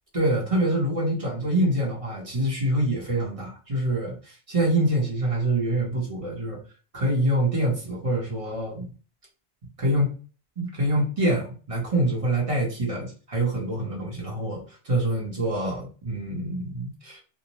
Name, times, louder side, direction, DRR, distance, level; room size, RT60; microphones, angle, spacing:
voice 1, 0.1-4.1 4.5-6.6 6.9-8.9 9.8-10.2 10.6-17.2, right 1 dB, 30° right, -2 dB, 0.9 m, -25 dB
2.6 x 2.0 x 2.9 m, 0.36 s
omnidirectional pair, 1.2 m